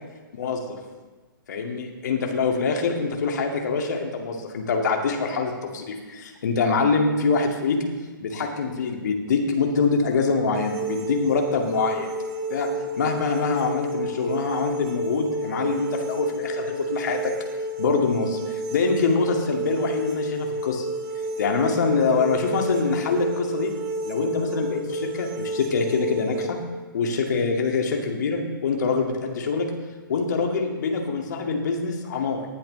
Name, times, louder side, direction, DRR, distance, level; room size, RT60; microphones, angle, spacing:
voice 1, 0.3-0.8 1.5-7.8 8.2-12.1 12.5-12.7 13.0-17.3 17.8-20.9 21.4-23.7 24.1-26.6 26.9-29.7 30.1-32.5, left 4 dB, 50° left, 2 dB, 2.2 m, -24 dB
sound 1, 10.5-26.5, right 1 dB, 40° right, 1.9 m, -31 dB
19.0 x 10.0 x 3.2 m, 1.3 s
figure-of-eight pair, 120°, 12 cm